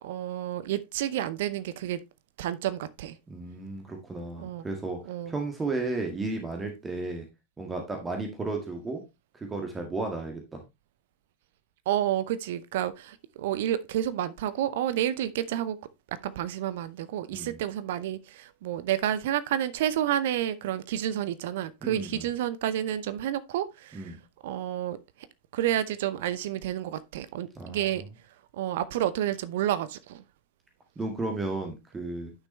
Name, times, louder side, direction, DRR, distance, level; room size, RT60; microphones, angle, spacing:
voice 1, 0.0-2.0 2.4-3.2 4.4-4.6 5.1-5.3 11.9-15.8 16.2-24.2 24.4-25.0 25.5-28.0 28.5-30.2, right 11 dB, 55° right, 0.7 m, -30 dB
voice 2, 3.3-5.0 5.3-7.2 7.6-9.0 9.3-10.6 17.3-17.6 21.8-22.3 23.9-24.2 27.6-27.9 31.0-32.3, right 3 dB, 15° right, 1.7 m, -33 dB
10.0 x 6.1 x 3.1 m
figure-of-eight pair, 90°, 0 cm